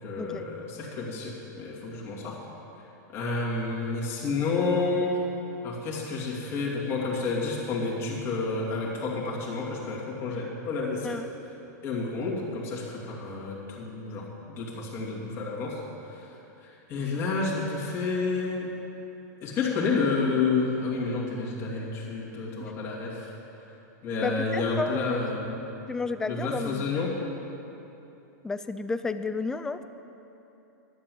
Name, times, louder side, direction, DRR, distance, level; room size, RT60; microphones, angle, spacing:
voice 1, 0.0-2.4 3.1-5.2 5.6-11.2 11.8-15.8 16.1-16.3 16.6-18.7 19.4-23.3 24.0-25.6 26.3-27.1, left 3 dB, 25° left, -5 dB, 2.5 m, -30 dB
voice 2, 24.2-25.2 25.9-26.9 28.4-29.8, left 3 dB, 5° left, 10 dB, 0.3 m, -32 dB
11.5 x 7.4 x 7.8 m, 3.0 s
supercardioid pair, 155°, 10 cm